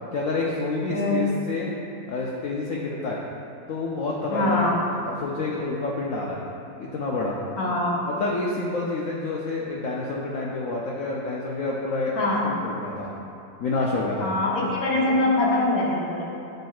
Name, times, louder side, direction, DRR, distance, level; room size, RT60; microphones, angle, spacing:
voice 1, 0.1-1.7 2.1-3.2 3.7-4.6 5.0-6.4 6.8-7.4 8.1-13.1 13.6-14.3, left 3 dB, 90° left, -3 dB, 0.7 m, -28 dB
voice 2, 0.9-1.2 4.3-4.8 7.6-8.0 12.1-12.5 14.2-16.2, left 2 dB, 55° left, -4 dB, 1.3 m, -23 dB
9.2 x 4.3 x 2.3 m, 2.7 s
omnidirectional pair, 2.1 m